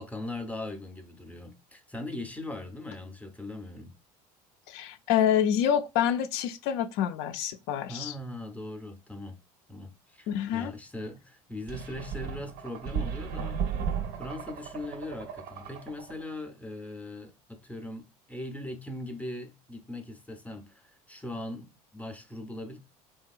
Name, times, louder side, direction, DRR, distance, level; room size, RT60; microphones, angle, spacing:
voice 1, 0.0-3.9 7.9-9.4 9.7-13.6 14.2-22.8, left 1 dB, 5° left, 0.5 m, -40 dB
voice 2, 4.7-8.1 10.3-10.7, left 9 dB, 60° left, 0.4 m, -27 dB
sound 1, 11.7-16.2, right 7 dB, 60° right, 0.6 m, -35 dB
2.9 x 2.3 x 2.3 m
hypercardioid pair, 80°, 19 cm